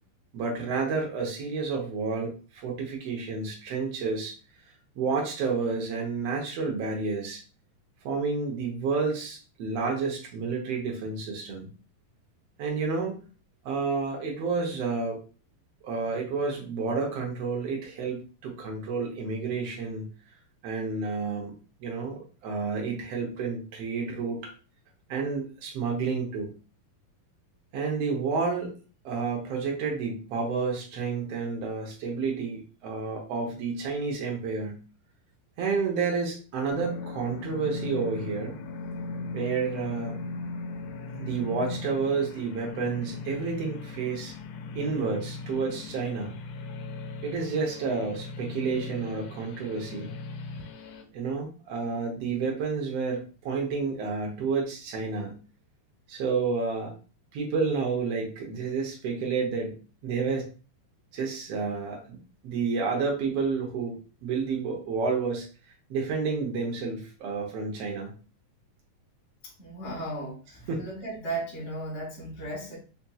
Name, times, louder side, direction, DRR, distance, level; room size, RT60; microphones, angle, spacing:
voice 1, 0.3-4.3 5.0-7.4 8.0-11.7 12.6-13.2 13.6-15.2 15.8-20.1 20.6-21.5 21.8-24.5 25.1-26.5 27.7-28.7 29.0-34.8 35.6-38.5 39.3-40.1 41.1-44.3 44.7-46.4 47.2-50.1 51.1-55.3 56.1-56.9 57.3-60.5 61.1-62.2 62.4-64.0 64.2-65.5 65.9-68.1 70.7-70.9, right 4 dB, 80° right, 0 dB, 1.4 m, -30 dB
sound 1, 36.7-51.0, left 3 dB, 90° left, 2.6 m, -38 dB
voice 2, 69.6-72.7, right 2 dB, 25° left, -6 dB, 1.5 m, -35 dB
5.7 x 2.7 x 2.3 m, 0.35 s
omnidirectional pair, 4.1 m